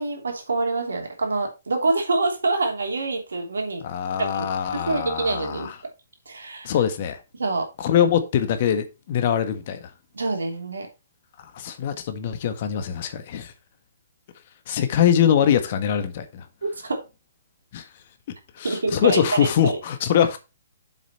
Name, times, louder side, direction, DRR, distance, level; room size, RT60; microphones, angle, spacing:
voice 1, 0.0-3.8 4.2-5.7 6.3-6.8 7.3-7.7 10.1-10.9 16.6-17.0 18.6-19.8, right 3 dB, 75° right, 3.1 m, -26 dB
voice 2, 3.8-5.8 6.6-7.2 7.8-9.8 11.5-13.5 14.7-16.4 17.7-17.9 18.6-20.4, left 9 dB, 45° left, 1.6 m, -23 dB
7.4 x 6.6 x 4.4 m
figure-of-eight pair, 125°, 0 cm